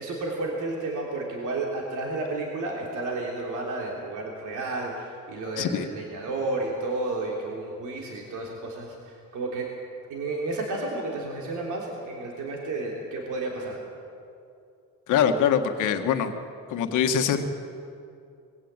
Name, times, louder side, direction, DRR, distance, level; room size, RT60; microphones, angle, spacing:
voice 1, 0.0-8.9 9.3-9.7 10.1-13.8, right 2 dB, 80° right, -1 dB, 3.4 m, -31 dB
voice 2, 5.6-5.9 15.1-16.3 16.7-17.4, left 8 dB, 85° left, 6 dB, 1.6 m, -23 dB
22.0 x 16.5 x 8.9 m, 2.5 s
cardioid pair, 90°, 30 cm